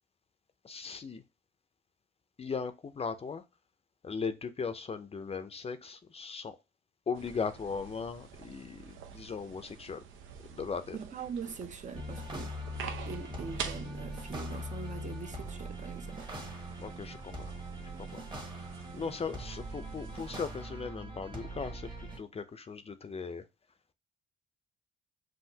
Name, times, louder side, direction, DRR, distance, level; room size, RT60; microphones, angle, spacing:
voice 1, 0.6-1.2 2.4-3.4 4.0-6.6 7.1-10.0 10.5-11.0 16.8-17.5 17.8-18.2 18.9-23.4, left 5 dB, 30° left, 0.5 m, -38 dB
sound 1, 7.1-20.5, right 7 dB, 85° right, 0.6 m, -47 dB
voice 2, 10.9-12.6 13.1-16.2 16.7-16.8, right 6 dB, 40° right, 0.6 m, -42 dB
sound 2, 11.9-22.2, equal, 25° right, 1.2 m, -41 dB
5.6 x 2.5 x 2.7 m
cardioid pair, 90°, 20 cm